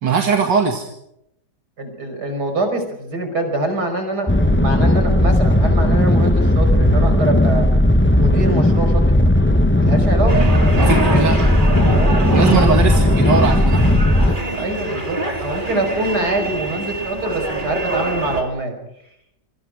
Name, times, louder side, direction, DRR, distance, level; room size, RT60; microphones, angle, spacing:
voice 1, 0.0-0.9 10.8-11.4 12.3-14.0, right 5 dB, 85° right, 3 dB, 2.8 m, -19 dB
voice 2, 1.8-7.7 8.1-9.1 9.8-10.3 10.6-11.3 11.8-12.7 14.5-18.8, right 2 dB, 65° right, 6 dB, 5.9 m, -24 dB
thrusters loopamplified, 4.3-14.4, left 1 dB, 10° left, 0.9 m, -15 dB
sound 1, 10.3-18.4, right 2 dB, 25° right, 3.5 m, -25 dB
27.5 x 25.0 x 5.0 m, 0.78 s
omnidirectional pair, 1.9 m